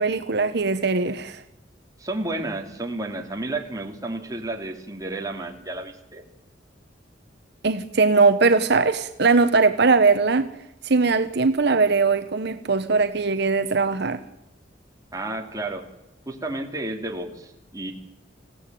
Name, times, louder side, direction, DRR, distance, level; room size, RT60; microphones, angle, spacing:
voice 1, 0.0-1.4 7.6-10.5 10.8-14.2, right 4 dB, 60° right, 1.0 m, -20 dB
voice 2, 2.0-6.2 15.1-15.8 16.3-17.9, right 2 dB, 20° right, 2.8 m, -31 dB
26.0 x 16.0 x 9.2 m
head